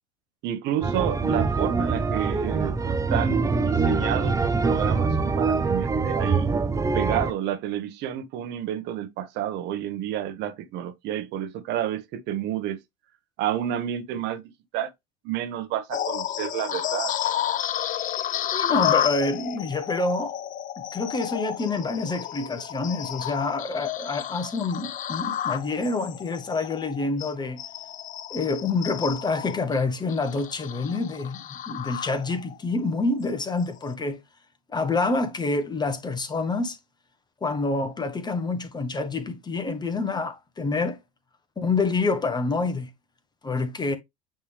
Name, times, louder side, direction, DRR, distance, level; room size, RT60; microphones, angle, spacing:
voice 1, 0.4-6.5 6.9-12.8 13.4-14.9 15.2-17.1, right 11 dB, 55° right, 1.3 m, -30 dB
sound 1, 0.8-7.3, right 4 dB, 15° right, 0.7 m, -24 dB
sound 2, 15.9-32.6 33.0-33.2 33.8-33.9, left 11 dB, 40° left, 0.7 m, -31 dB
voice 2, 18.5-20.4 20.8-27.6 28.3-34.2 34.7-36.8 37.4-41.0 41.6-42.9 43.4-44.0, left 3 dB, 20° left, 1.4 m, -27 dB
8.9 x 3.5 x 3.4 m
hypercardioid pair, 85°, 21 cm